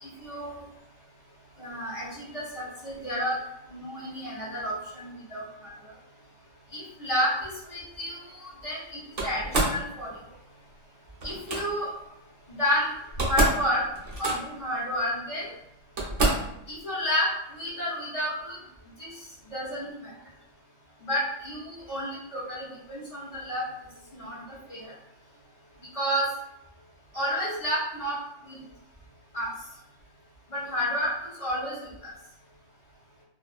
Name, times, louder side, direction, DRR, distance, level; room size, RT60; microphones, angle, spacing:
voice 1, 0.0-0.6 1.6-3.4 3.7-5.7 6.7-10.1 11.2-11.9 12.6-12.9 13.2-13.8 14.2-15.5 16.7-18.6 19.0-19.2 19.5-20.1 21.0-23.6 24.1-24.4 24.7-24.9 25.9-26.3 27.1-28.2 28.4-28.6 29.3-29.5 30.5-32.1, equal, 30° left, -8 dB, 0.9 m, -30 dB
Slam, 9.2-9.8 11.2-11.6 12.7-12.8 13.0-13.7 13.9-14.6 15.4-15.5 16.0-16.5, right 2 dB, 50° right, 0.4 m, -26 dB
2.5 x 2.3 x 2.3 m, 0.80 s
omnidirectional pair, 1.3 m